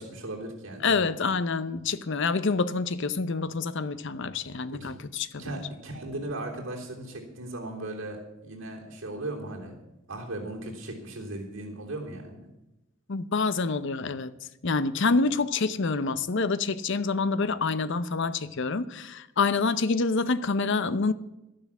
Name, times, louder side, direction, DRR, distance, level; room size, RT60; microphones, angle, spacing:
voice 1, 0.0-1.0 4.7-4.9 5.4-9.8 10.1-12.5, right 1 dB, 60° right, 3.4 m, -37 dB
voice 2, 0.8-5.6 13.1-14.3 14.6-21.1, left 4 dB, 60° left, 0.7 m, -27 dB
12.0 x 10.5 x 7.2 m
head